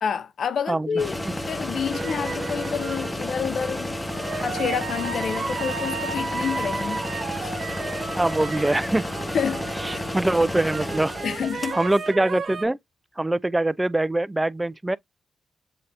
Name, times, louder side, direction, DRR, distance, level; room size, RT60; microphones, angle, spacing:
voice 1, 0.0-7.1 7.4-7.6 9.3-10.1 11.2-11.8, left 7 dB, 75° left, 0.6 m, -29 dB
sound 1, 1.0-12.1, left 1 dB, 15° left, 1.0 m, -31 dB
sound 2, 1.9-3.2 4.1-10.3 10.6-12.6, right 5 dB, 65° right, 1.1 m, -33 dB
voice 2, 8.1-9.0 9.8-11.1 11.7-12.8 13.2-15.0, right 2 dB, 20° right, 0.4 m, -23 dB
7.5 x 2.7 x 2.5 m
cardioid pair, 60°, 0 cm